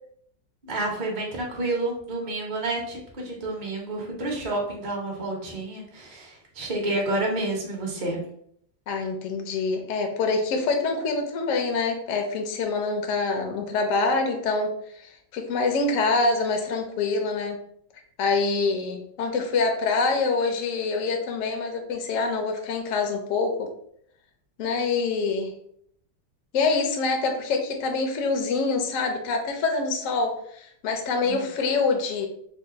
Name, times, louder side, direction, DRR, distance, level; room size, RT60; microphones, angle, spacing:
voice 1, 0.6-8.2 31.2-31.5, right 2 dB, 45° right, -2 dB, 0.5 m, -29 dB
voice 2, 8.9-17.6 18.2-23.7 24.6-25.5 26.5-32.3, left 4 dB, 65° left, 3 dB, 0.8 m, -25 dB
3.4 x 2.3 x 4.0 m, 0.67 s
omnidirectional pair, 2.1 m